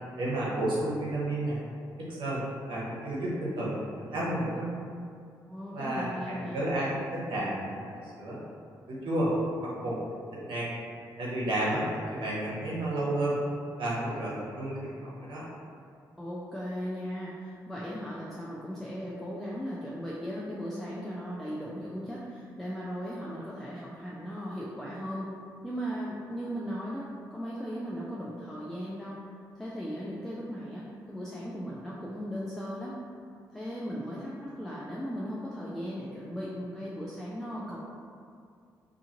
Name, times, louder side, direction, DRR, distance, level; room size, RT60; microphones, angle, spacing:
voice 1, 0.2-1.6 2.0-2.4 2.7-4.7 5.7-8.4 8.9-9.3 9.6-10.0 10.3-10.7 11.2-13.4 13.8-15.4, right 1 dB, 65° right, -6 dB, 0.9 m, -31 dB
voice 2, 5.5-6.6 16.2-25.3 25.6-29.2 29.6-33.0 33.5-37.8, equal, 5° left, -6 dB, 0.4 m, -37 dB
2.5 x 2.4 x 2.8 m, 2.3 s
hypercardioid pair, 45°, 9 cm